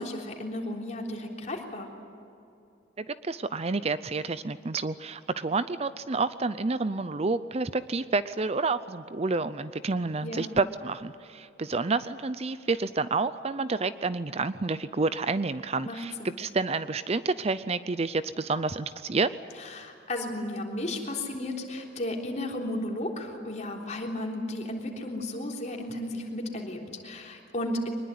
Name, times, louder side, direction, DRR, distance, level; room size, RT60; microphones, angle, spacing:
voice 1, 0.0-1.9 10.2-10.5 15.8-16.4 19.6-27.9, left 1 dB, 40° left, 1 dB, 3.6 m, -34 dB
voice 2, 3.0-19.3, right 3 dB, 35° right, 14 dB, 0.5 m, -29 dB
23.5 x 20.5 x 9.7 m, 2.7 s
head